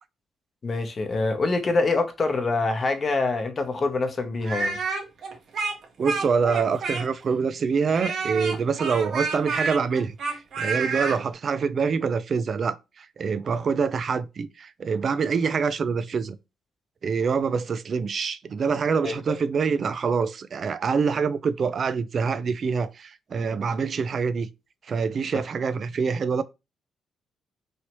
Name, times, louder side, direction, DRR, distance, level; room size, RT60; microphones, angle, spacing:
voice 1, 0.6-4.8 19.0-19.3 25.3-25.4, left 3 dB, 40° left, 0.8 m, -25 dB
Speech, 4.4-7.3 7.9-11.2, right 4 dB, 65° right, 0.9 m, -29 dB
voice 2, 6.0-16.4 17.0-24.5 24.9-26.4, right 5 dB, 50° right, 0.3 m, -25 dB
3.1 x 2.8 x 2.9 m
cardioid pair, 90°, 0 cm